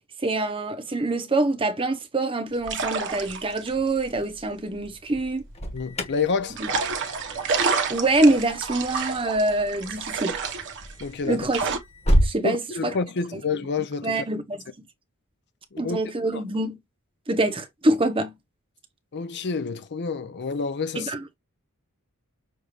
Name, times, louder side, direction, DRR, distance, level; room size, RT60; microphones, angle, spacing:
voice 1, 0.2-5.4 6.6-6.7 7.9-10.4 11.2-11.6 12.2-12.9 14.0-14.9 15.8-16.8 17.3-18.3 20.9-21.2, right 2 dB, 25° right, 0.9 m, -25 dB
sound 1, 2.5-5.7 6.5-11.8, right 4 dB, 55° right, 1.1 m, -29 dB
Alarm, 5.3-12.4, equal, 30° left, 1.3 m, -30 dB
voice 2, 5.7-6.6 11.0-11.5 12.4-14.3 15.7-16.0 16.3-16.4 19.1-21.1, left 5 dB, 50° left, 0.6 m, -28 dB
6.6 x 2.6 x 3.1 m
head